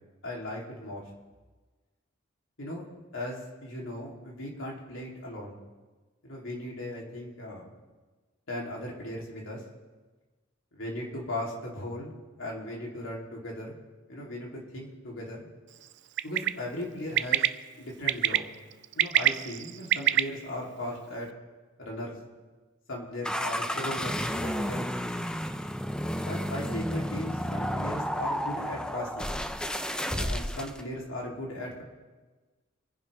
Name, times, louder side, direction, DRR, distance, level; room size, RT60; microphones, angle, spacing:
voice 1, 0.2-1.0 2.6-2.8 3.1-5.6 6.2-7.6 8.5-9.6 10.7-12.1 12.4-13.7 14.1-15.5 16.2-17.4 17.8-18.4 19.0-21.3 21.8-22.2 22.9-24.9 26.3-29.3 30.1-31.8, left 1 dB, 75° left, -3 dB, 3.5 m, -37 dB
Bird, 16.2-16.5 17.2-17.5 18.1-18.4 18.8-20.2, right 13 dB, 60° right, 0.5 m, -23 dB
sound 1, 23.2-30.8, equal, 5° left, 0.6 m, -32 dB
25.5 x 10.5 x 3.6 m, 1.3 s
head